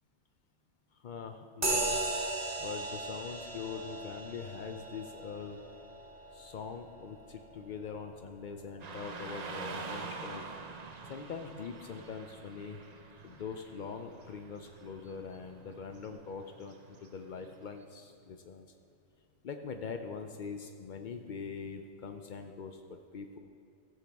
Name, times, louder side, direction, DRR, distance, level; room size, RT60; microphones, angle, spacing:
voice 1, 0.9-2.0 2.6-5.6 6.3-10.4 11.1-12.8 13.2-18.7 19.4-23.4, left 5 dB, 90° left, 5 dB, 0.4 m, -43 dB
sound 1, 1.6-9.5, right 2 dB, 35° right, 1.8 m, -38 dB
Car passing by / Traffic noise roadway noise, 8.8-17.8, right 4 dB, 65° right, 0.4 m, -46 dB
14.5 x 7.7 x 3.5 m, 2.7 s
omnidirectional pair, 1.5 m